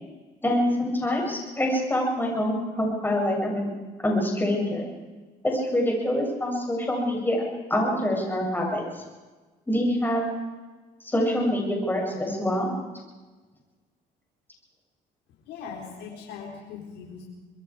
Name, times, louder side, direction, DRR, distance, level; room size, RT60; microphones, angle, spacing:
voice 1, 0.4-3.7 4.0-4.9 5.4-7.4 7.7-8.8 9.7-10.3 11.1-12.7, left 1 dB, 10° left, -1 dB, 7.8 m, -25 dB
voice 2, 15.4-17.2, left 6 dB, 85° left, -2 dB, 4.2 m, -40 dB
25.5 x 21.5 x 5.0 m, 1.3 s
cardioid pair, 110°, 17 cm